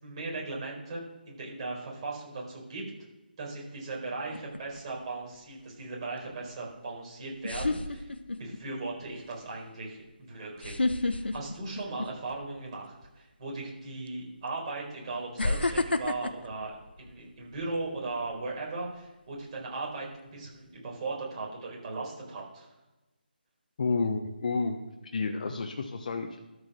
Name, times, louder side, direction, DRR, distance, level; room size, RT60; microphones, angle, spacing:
voice 1, 0.0-2.8 3.4-8.1 8.4-22.7, right 3 dB, 35° right, -2 dB, 4.4 m, -38 dB
sound 1, 4.3-4.8 6.7-6.8 7.4-8.6 9.0-9.3 10.6-12.4 12.8-13.1 14.1-14.2 15.4-17.6 18.1-18.4, left 2 dB, 80° left, 0.9 m, -30 dB
voice 2, 23.8-24.8 25.1-26.3, left 4 dB, 50° left, 4 dB, 1.1 m, -30 dB
13.0 x 5.1 x 6.2 m, 1.1 s
figure-of-eight pair, 155°, 6 cm